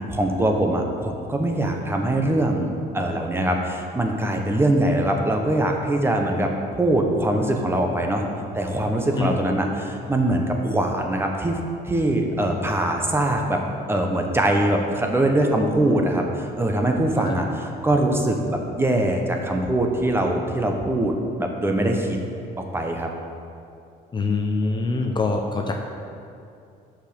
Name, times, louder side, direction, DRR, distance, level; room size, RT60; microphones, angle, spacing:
voice 1, 0.1-8.2 8.5-13.6 13.9-22.2 22.6-23.1, right 1 dB, 15° right, 2 dB, 0.8 m, -22 dB
voice 2, 24.1-25.7, left 3 dB, 25° left, 2 dB, 0.6 m, -24 dB
6.4 x 5.0 x 6.6 m, 2.5 s
cardioid pair, 110°, 17 cm